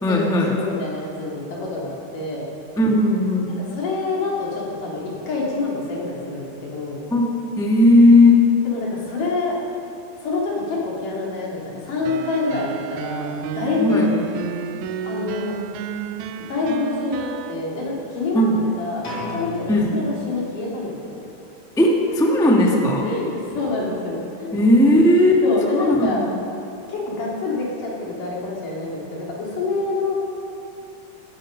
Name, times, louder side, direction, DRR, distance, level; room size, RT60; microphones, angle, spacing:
voice 1, 0.0-0.5 2.8-3.5 7.1-7.3 7.6-8.5 13.8-14.1 18.3-18.6 19.7-19.9 21.8-23.1 24.5-25.4 25.7-26.4, left 1 dB, 5° left, -2 dB, 0.4 m, -16 dB
voice 2, 0.6-2.5 3.7-7.0 8.6-9.5 10.2-14.1 15.0-15.5 16.4-18.5 18.8-21.2 23.0-24.5 25.4-26.2 26.9-30.2, left 3 dB, 70° left, -4 dB, 4.5 m, -26 dB
sound 1, 12.0-17.5, right 7 dB, 80° right, 1.8 m, -31 dB
sound 2, 19.0-20.9, left 3 dB, 50° left, 5.2 m, -35 dB
18.0 x 14.5 x 5.2 m, 2.7 s
omnidirectional pair, 3.9 m